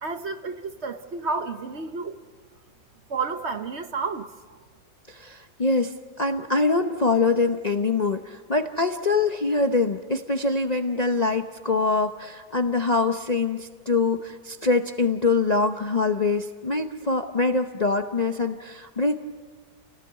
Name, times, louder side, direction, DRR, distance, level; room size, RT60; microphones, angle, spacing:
voice 1, 0.0-2.2 3.1-4.3, right 4 dB, 50° right, 1.1 m, -31 dB
voice 2, 5.1-19.2, left 3 dB, 35° left, 0.7 m, -24 dB
28.5 x 18.5 x 8.9 m
omnidirectional pair, 1.7 m